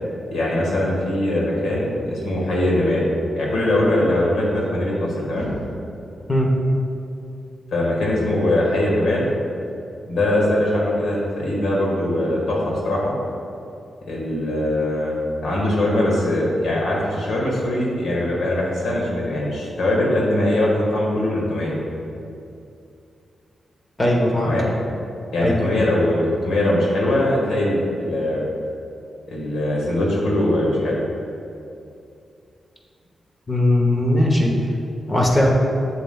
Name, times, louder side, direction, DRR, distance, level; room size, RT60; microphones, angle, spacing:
voice 1, 0.3-3.1 3.3-5.6 7.7-9.3 10.1-13.1 14.1-21.8 24.4-24.7 25.3-28.4 29.3-31.0, left 1 dB, 85° left, -3 dB, 1.5 m, -21 dB
voice 2, 24.0-24.5 25.4-25.6 33.5-34.5 35.1-35.5, left 1 dB, 25° left, -1 dB, 0.9 m, -18 dB
7.3 x 7.1 x 2.3 m, 2.6 s
cardioid pair, 80°, 0 cm